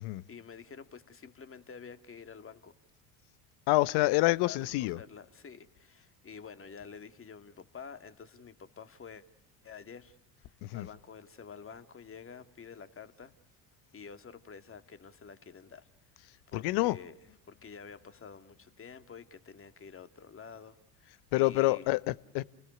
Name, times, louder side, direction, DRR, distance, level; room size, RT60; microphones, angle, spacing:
voice 1, 0.3-2.7 4.1-4.2 4.4-9.2 9.6-13.3 13.9-15.9 16.1-17.2 17.5-21.9, left 6 dB, 30° left, 2.2 m, -49 dB
voice 2, 3.7-5.0 10.6-10.9 16.5-17.0 21.3-22.4, left 20 dB, 60° left, 0.9 m, -27 dB
30.0 x 19.5 x 9.7 m
hypercardioid pair, 65°, 44 cm